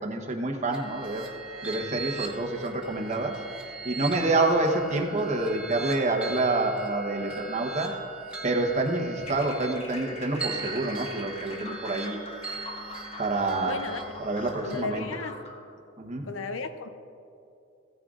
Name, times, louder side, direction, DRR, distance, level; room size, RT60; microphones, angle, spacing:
voice 1, 0.0-1.3 1.6-3.4 3.8-7.9 8.4-12.2 13.2-13.8 14.2-15.1 16.0-16.3, right 2 dB, 35° right, 2 dB, 1.0 m, -27 dB
sound 1, 0.7-14.8, right 4 dB, 5° right, 1.4 m, -40 dB
sound 2, 9.2-15.6, left 2 dB, 30° left, 1.2 m, -42 dB
voice 2, 13.6-14.0 14.6-15.4 16.3-16.9, left 4 dB, 70° left, 9 dB, 0.6 m, -34 dB
16.5 x 10.0 x 2.5 m, 2.6 s
head